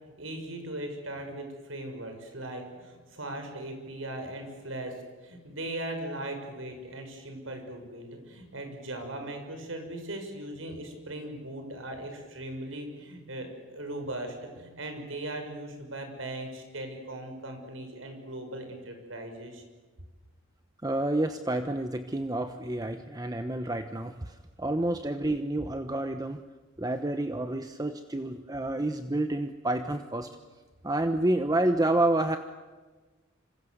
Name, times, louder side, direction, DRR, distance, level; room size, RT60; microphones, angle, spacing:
voice 1, 0.0-5.0 5.2-19.6, right 1 dB, 85° right, 5 dB, 6.5 m, -39 dB
voice 2, 20.8-26.4 26.8-30.3 30.8-32.4, right 1 dB, 20° right, 7 dB, 1.1 m, -29 dB
27.0 x 26.5 x 8.0 m, 1.3 s
head